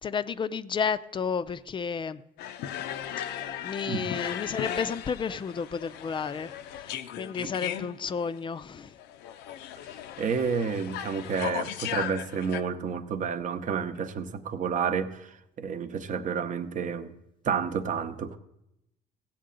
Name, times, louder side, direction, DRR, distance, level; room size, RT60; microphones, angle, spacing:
voice 1, 0.0-2.2 3.3-9.0, left 6 dB, 30° left, 0.4 m, -32 dB
sound 1, 2.4-12.6, left 10 dB, 90° left, 0.6 m, -37 dB
voice 2, 10.2-17.1 17.4-18.4, right 6 dB, 50° right, 0.8 m, -30 dB
16.0 x 8.4 x 3.8 m
cardioid pair, 110°, 17 cm